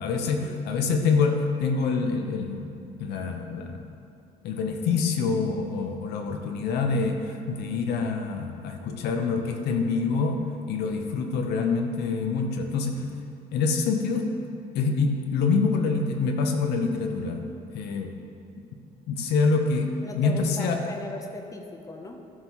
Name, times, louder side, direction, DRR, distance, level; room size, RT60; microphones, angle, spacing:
voice 1, 0.0-2.7 3.0-3.8 4.4-13.1 13.5-14.3 14.7-17.5 17.7-18.1 19.1-20.8, left 4 dB, 75° left, 4 dB, 0.7 m, -26 dB
voice 2, 20.0-22.3, left 2 dB, 20° left, 3 dB, 0.6 m, -38 dB
12.5 x 4.5 x 2.9 m, 2.6 s
cardioid pair, 110°, 17 cm